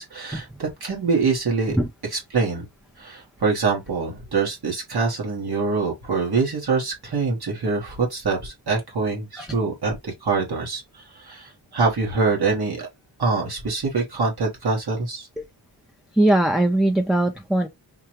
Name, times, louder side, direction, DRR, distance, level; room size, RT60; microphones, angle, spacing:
voice 1, 0.0-1.8 2.0-2.6 3.0-12.9 13.2-15.3, right 4 dB, 55° right, 1.3 m, -25 dB
voice 2, 16.2-17.7, right 1 dB, ahead, 0.4 m, -19 dB
5.8 x 2.2 x 3.0 m
wide cardioid pair, 115°, 45 cm